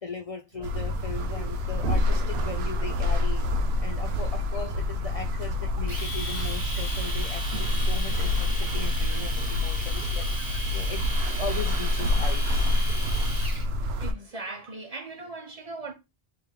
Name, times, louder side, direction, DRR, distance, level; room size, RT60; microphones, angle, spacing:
voice 1, 0.0-3.4 3.8-10.3 10.7-11.0 11.4-12.7, left 5 dB, 45° left, 0.5 m, -38 dB
sound 1, 0.5-14.7, right 3 dB, 60° right, 1.1 m, -52 dB
sound 2, 0.6-14.1, left 1 dB, 80° right, 0.8 m, -27 dB
Domestic sounds home sounds, 5.9-13.6, equal, 20° right, 1.3 m, -36 dB
voice 2, 14.0-15.9, right 3 dB, 40° right, 0.8 m, -38 dB
3.3 x 3.3 x 3.5 m
omnidirectional pair, 1.0 m